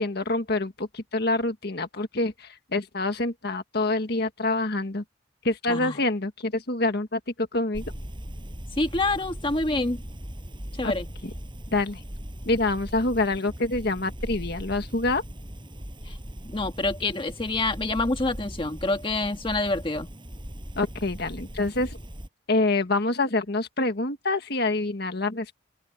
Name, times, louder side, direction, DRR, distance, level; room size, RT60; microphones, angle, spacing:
voice 1, 0.0-5.0 5.4-7.8 10.8-10.9 11.7-12.0 12.4-15.2 20.8-22.0 22.5-25.6, left 2 dB, 55° left, 1.7 m, -26 dB
voice 2, 5.7-6.0 8.8-10.0 10.8-11.1 16.1-16.2 16.5-20.1, left 2 dB, 25° left, 1.5 m, -27 dB
sound 1, 7.7-22.3, equal, 25° right, 6.3 m, -39 dB
head